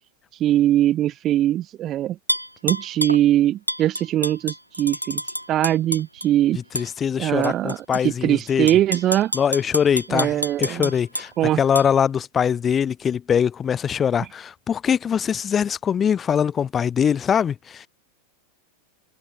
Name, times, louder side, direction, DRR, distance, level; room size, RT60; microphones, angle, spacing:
voice 1, 0.4-2.2 2.6-5.2 5.5-6.6 7.2-9.3 10.1-10.9 11.4-11.6 14.2-14.3, right 12 dB, 30° right, 0.4 m, -21 dB
Tap / Glass, 2.3-3.2 3.7-6.3 6.8-6.9 7.4-8.0 8.5-11.3 11.8-11.9, equal, 90° right, 0.6 m, -28 dB
voice 2, 6.7-8.7 9.3-11.3 11.6-17.9, left 8 dB, 20° left, 0.7 m, -22 dB
figure-of-eight pair, 90°, 0 cm